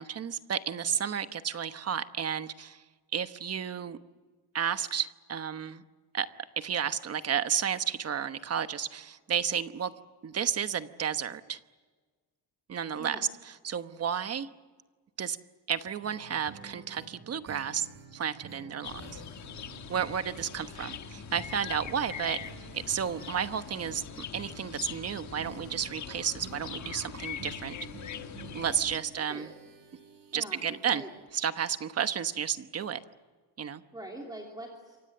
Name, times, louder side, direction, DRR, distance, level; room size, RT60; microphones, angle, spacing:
voice 1, 0.0-2.8 3.1-4.0 4.5-5.8 6.1-6.3 6.6-9.9 10.2-11.6 12.7-13.3 13.6-14.5 15.2-15.4 15.7-17.9 18.1-19.2 19.9-22.4 22.7-24.0 24.3-27.8 28.5-29.5 30.3-31.0 31.3-33.0 33.6-33.8, right 8 dB, 35° right, 11 dB, 1.1 m, -32 dB
sound 1, 16.0-31.7 32.0-32.1 32.3-32.4, right 5 dB, 55° right, 6.2 m, -50 dB
sound 2, 18.8-29.0, left 8 dB, 45° left, 1.3 m, -42 dB
voice 2, 29.1-29.5 30.3-31.1 33.9-35.0, right 1 dB, 10° right, 0 dB, 3.0 m, -44 dB
28.0 x 24.5 x 7.9 m, 1.4 s
cardioid pair, 175°, 41 cm